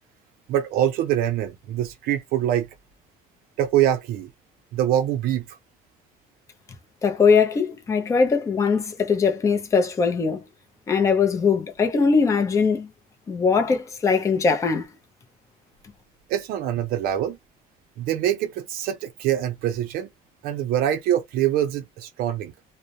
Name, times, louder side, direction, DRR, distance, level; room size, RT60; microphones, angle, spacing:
voice 1, 0.5-2.7 3.6-4.3 4.7-5.6 16.3-17.4 18.0-20.1 20.4-22.5, right 11 dB, 70° right, 0.5 m, -24 dB
voice 2, 7.0-10.4 10.9-12.9 13.3-14.9, left 5 dB, 20° left, 0.5 m, -21 dB
2.2 x 2.0 x 2.7 m
cardioid pair, 165°, 16 cm